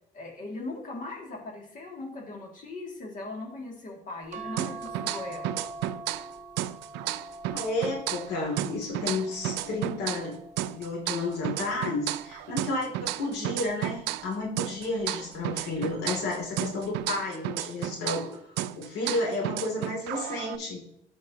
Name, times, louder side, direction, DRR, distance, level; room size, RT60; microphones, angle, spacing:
voice 1, 0.1-5.6, left 2 dB, 50° left, -1 dB, 2.2 m, -39 dB
sound 1, 4.3-10.9 11.6-13.0 14.2-14.6 15.0-15.1, right 2 dB, 45° right, 1.0 m, -44 dB
sound 2, 4.6-6.3 6.6-10.3 10.6-14.3 14.6-18.3 18.6-20.6, right 14 dB, 90° right, 0.4 m, -33 dB
voice 2, 7.5-18.3 18.8-20.8, left 2 dB, 80° left, 0 dB, 2.5 m, -32 dB
13.0 x 5.2 x 2.8 m, 0.75 s
cardioid pair, 110°, 17 cm